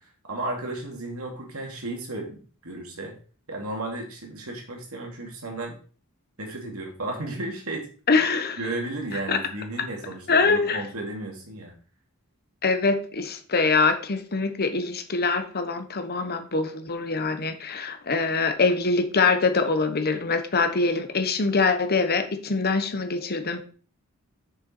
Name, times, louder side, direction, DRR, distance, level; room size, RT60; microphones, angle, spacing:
voice 1, 0.3-3.1 3.5-5.7 6.4-7.9 8.6-11.7, right 2 dB, 75° right, 1 dB, 2.7 m, -34 dB
voice 2, 8.1-8.6 9.3-9.4 10.3-10.8 12.6-23.6, left 4 dB, 45° left, 8 dB, 1.1 m, -24 dB
6.9 x 6.8 x 4.5 m, 0.40 s
head